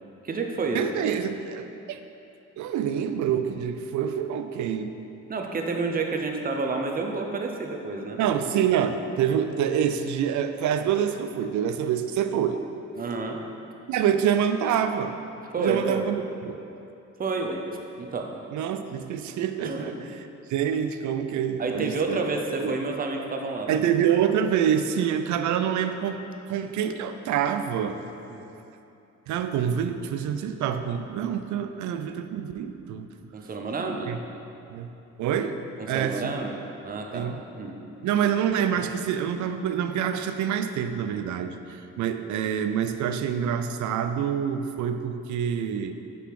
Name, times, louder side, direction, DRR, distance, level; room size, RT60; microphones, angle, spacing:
voice 1, 0.2-0.8 5.3-8.2 13.0-13.4 15.5-16.0 17.2-17.6 18.0-18.3 19.6-19.9 21.6-23.8 28.3-28.4 33.3-34.1 35.8-37.3 37.6-37.8, right 3 dB, 30° right, 2 dB, 0.7 m, -29 dB
voice 2, 0.7-2.0 2.6-4.9 8.2-12.6 13.9-15.2 15.6-16.6 18.5-19.9 20.5-22.2 22.6-22.7 23.7-28.0 29.3-33.1 33.8-34.2 34.7-34.9 35.2-35.6 35.9-36.4 37.1-37.4 38.0-45.9, right 8 dB, 75° right, 9 dB, 0.5 m, -26 dB
6.7 x 4.1 x 4.8 m, 2.8 s
cardioid pair, 90°, 30 cm